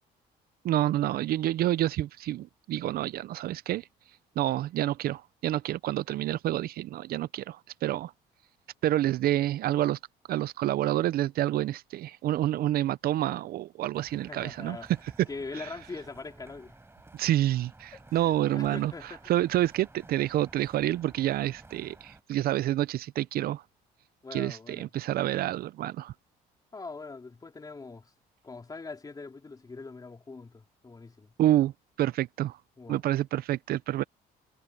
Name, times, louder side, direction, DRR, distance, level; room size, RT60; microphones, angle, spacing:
voice 1, 0.6-3.8 4.4-8.1 8.8-10.0 10.3-14.8 17.1-18.9 19.3-23.6 24.3-26.1 31.4-31.7 32.0-32.6 32.9-34.0, right 13 dB, 65° right, 0.6 m, -28 dB
sound 1, 13.9-22.2, right 2 dB, 15° right, 6.5 m, -54 dB
voice 2, 14.3-14.9 15.3-16.8 17.9-19.2 24.2-24.9 26.7-28.1 28.4-31.3 32.8-33.0, left 3 dB, 20° left, 4.1 m, -42 dB
cardioid pair, 110°, 17 cm